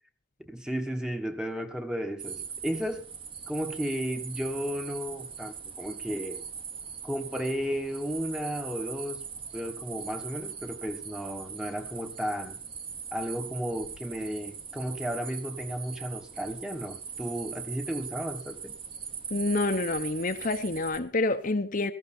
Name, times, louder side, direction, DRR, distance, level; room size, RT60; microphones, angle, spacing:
voice 1, 0.4-3.1 3.5-6.4 7.0-9.3 9.5-12.6 13.1-18.8, equal, 5° right, 1.2 m, -34 dB
sound 1, 2.2-21.0, right 6 dB, 25° right, 1.2 m, -41 dB
voice 2, 19.3-21.9, left 2 dB, 40° left, 0.9 m, -28 dB
17.0 x 14.0 x 4.3 m
head